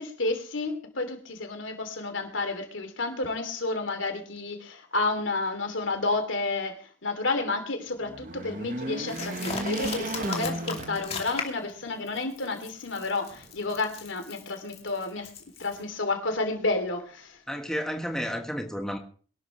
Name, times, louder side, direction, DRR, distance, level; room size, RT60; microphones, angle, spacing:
voice 1, 0.0-6.7 7.0-15.3 15.6-17.4, left 3 dB, 80° left, 3.0 m, -30 dB
sound 1, 8.0-11.6 12.1-12.2 13.3-14.0, right 2 dB, 45° right, 1.1 m, -34 dB
sound 2, 9.1-11.7 12.1-15.8, left 5 dB, 30° left, 2.6 m, -38 dB
voice 2, 17.5-19.0, equal, 5° left, 1.4 m, -31 dB
22.5 x 12.5 x 3.2 m
head